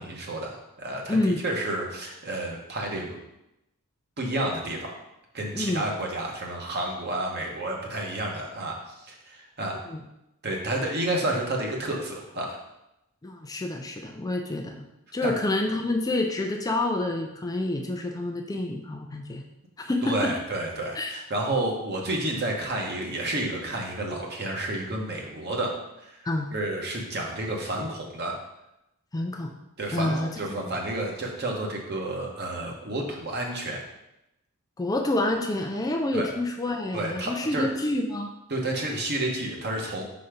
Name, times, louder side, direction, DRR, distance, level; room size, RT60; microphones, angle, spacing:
voice 1, 0.0-3.2 4.2-5.0 5.3-8.8 9.0-9.8 10.4-12.6 15.2-15.3 20.0-25.7 26.0-26.2 26.5-28.4 29.8-33.8 36.1-36.3 36.9-37.6 38.5-40.0, right 1 dB, 50° right, 0 dB, 1.3 m, -30 dB
voice 2, 1.1-1.4 5.5-5.8 9.9-10.0 13.2-14.8 15.1-19.4 19.8-20.4 20.9-21.1 26.3-26.5 29.1-29.5 29.9-30.7 34.8-38.3, left 2 dB, 15° left, 3 dB, 0.4 m, -28 dB
5.7 x 4.2 x 5.0 m, 0.89 s
head